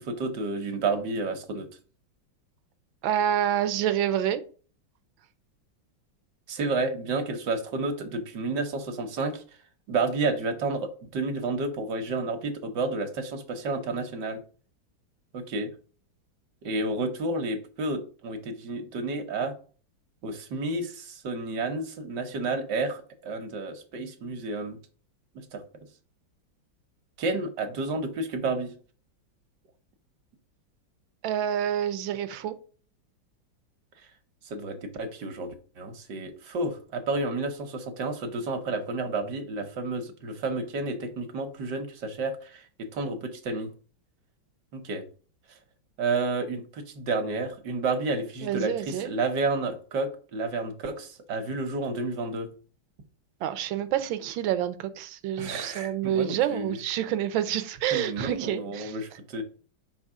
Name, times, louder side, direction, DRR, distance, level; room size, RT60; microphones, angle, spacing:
voice 1, 0.0-1.7 6.5-9.4 9.9-14.4 15.3-15.7 16.6-19.5 20.2-24.8 25.3-25.6 27.2-28.7 34.5-42.6 42.9-43.7 44.7-45.0 46.0-52.5 55.4-56.8 57.9-59.4, right 3 dB, 65° right, 1.5 m, -31 dB
voice 2, 3.0-4.4 31.2-32.5 48.4-49.1 53.4-59.0, right 10 dB, 85° right, 1.4 m, -28 dB
5.3 x 4.1 x 4.8 m
omnidirectional pair, 2.1 m